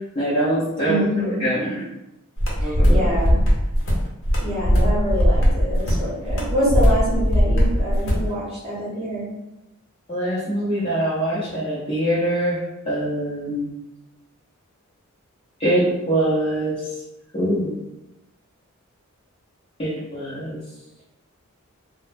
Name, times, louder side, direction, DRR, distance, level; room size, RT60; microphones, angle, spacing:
voice 1, 0.2-1.0 1.4-1.8 2.6-3.1 10.1-12.6 12.9-13.7 15.6-16.7 17.3-17.8 19.8-20.6, right 1 dB, 25° left, -11 dB, 0.6 m, -23 dB
voice 2, 0.8-1.5 2.6-3.4 4.4-9.3, equal, 30° right, -8 dB, 0.9 m, -26 dB
sound 1, 2.4-8.3, equal, 65° left, 0.7 m, -19 dB
2.2 x 2.0 x 3.3 m, 0.95 s
head